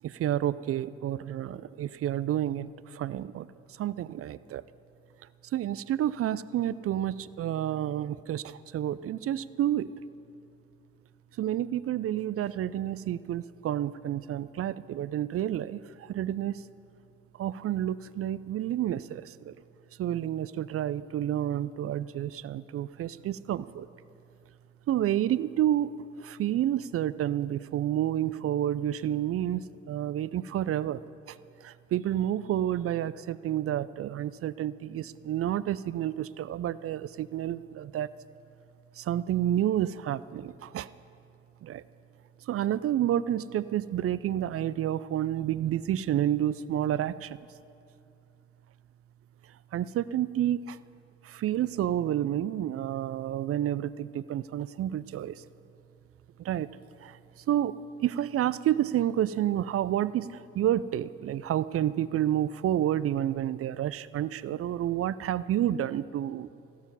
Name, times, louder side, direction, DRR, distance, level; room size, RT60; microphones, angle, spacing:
voice 1, 0.0-4.6 5.5-9.9 11.4-16.6 17.4-19.5 20.0-23.9 24.9-25.9 26.2-38.1 39.0-40.9 41.6-41.8 42.5-47.4 49.7-50.8 51.2-55.4 56.4-56.7 57.0-57.2 57.5-57.7 58.0-66.5, right 11 dB, 40° right, 18 dB, 0.4 m, -30 dB
15.0 x 12.0 x 5.4 m, 2.6 s
figure-of-eight pair, 45°, 36 cm